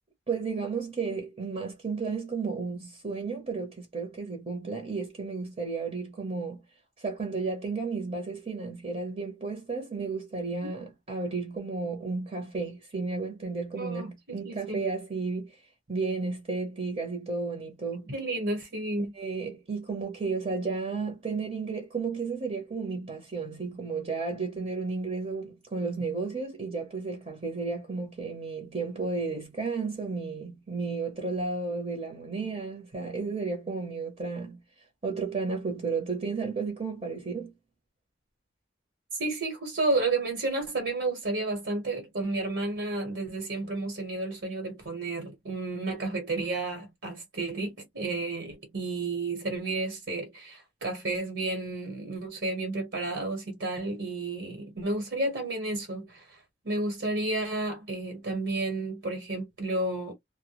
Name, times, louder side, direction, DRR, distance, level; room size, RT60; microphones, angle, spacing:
voice 1, 0.3-6.6 7.0-15.6 15.9-18.1 19.1-34.6 35.0-37.5, right 4 dB, 35° right, 0.8 m, -33 dB
voice 2, 13.7-14.8 18.1-19.1 39.1-56.4 56.6-60.1, right 2 dB, 75° right, 1.1 m, -31 dB
2.1 x 2.1 x 2.9 m
head